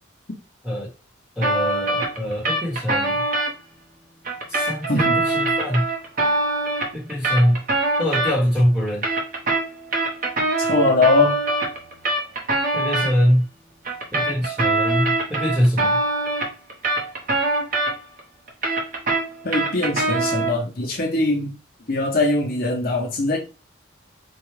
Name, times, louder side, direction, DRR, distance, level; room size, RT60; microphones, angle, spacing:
voice 1, 1.4-3.2 4.5-5.9 6.9-7.6 8.0-9.0 12.7-13.4 14.1-16.0, equal, 5° right, 1.2 m, -23 dB
sound 1, 1.4-3.5 4.2-8.6 8.9-13.1 13.8-18.2 18.5-20.6, right 2 dB, 45° right, 0.9 m, -23 dB
voice 2, 4.9-5.3 10.6-11.4 19.4-21.6 21.9-23.4, left 2 dB, 45° left, 0.8 m, -21 dB
4.5 x 2.4 x 3.2 m
head